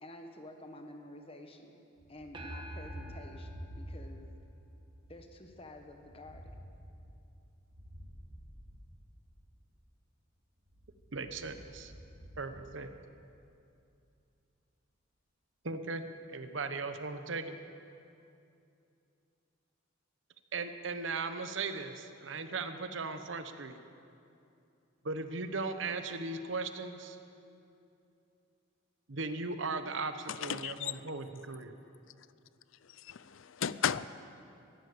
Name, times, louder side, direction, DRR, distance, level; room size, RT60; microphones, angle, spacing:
voice 1, 0.0-1.8 2.1-4.3 5.1-6.6, left 1 dB, 30° left, 1.3 m, -50 dB
Thunder, 2.0-4.4 4.7-9.5 10.6-13.2, equal, 85° right, 3.1 m, -50 dB
sound 1, 2.3-5.0, right 1 dB, 25° right, 1.2 m, -46 dB
voice 2, 11.1-11.9 12.4-12.9 15.6-16.0 16.3-17.5 20.5-23.8 25.0-27.2 29.1-31.7, right 3 dB, 65° right, 1.0 m, -37 dB
voice 3, 30.3-31.0 32.9-34.1, left 8 dB, 75° left, 0.5 m, -35 dB
14.5 x 11.5 x 8.4 m
head